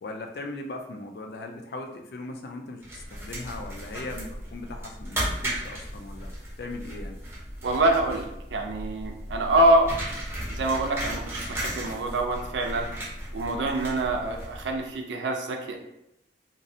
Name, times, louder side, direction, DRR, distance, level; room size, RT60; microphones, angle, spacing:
voice 1, 0.0-6.3 6.6-7.2, left 2 dB, 60° left, 3 dB, 0.4 m, -39 dB
sound 1, 2.8-14.9, right 1 dB, 15° right, 0.6 m, -35 dB
voice 2, 7.6-9.9 10.5-12.9 13.3-15.8, right 1 dB, 90° right, 3 dB, 0.4 m, -25 dB
2.5 x 2.0 x 2.7 m, 0.85 s
head